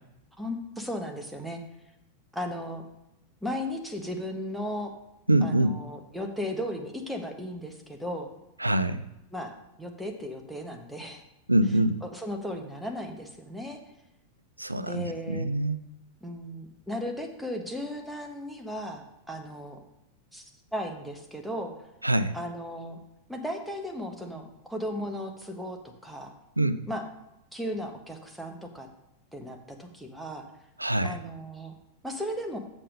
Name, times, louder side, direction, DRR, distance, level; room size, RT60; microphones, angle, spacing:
voice 1, 0.4-1.6 2.3-2.8 3.4-4.9 5.4-8.3 9.3-9.5 9.8-11.2 12.0-13.8 14.8-15.5 16.2-19.8 20.3-20.4 20.7-21.7 22.3-23.0 23.3-26.3 26.9-27.0 27.5-28.9 29.3-30.4 31.0-31.7 32.0-32.6, equal, ahead, 2 dB, 1.2 m, -36 dB
voice 2, 5.3-5.8 8.6-9.0 11.5-12.0 14.6-15.8 22.0-22.3 26.6-26.8 30.8-31.2, right 1 dB, 85° right, 12 dB, 0.3 m, -24 dB
7.0 x 5.5 x 5.3 m, 0.88 s
figure-of-eight pair, 90°, 0 cm